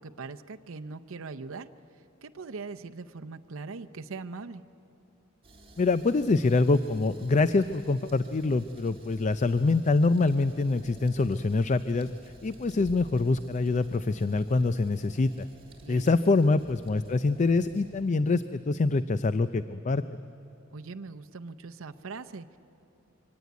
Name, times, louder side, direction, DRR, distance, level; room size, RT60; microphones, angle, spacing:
voice 1, 0.0-1.7 2.2-4.6 15.8-16.1 20.7-22.6, right 4 dB, 80° right, 7 dB, 0.7 m, -41 dB
sound 1, 5.4-18.1, right 1 dB, 30° right, 3.6 m, -53 dB
voice 2, 5.8-12.1 12.4-15.5 15.9-20.0, left 3 dB, 35° left, 13 dB, 0.4 m, -25 dB
24.0 x 17.5 x 9.3 m, 3.0 s
head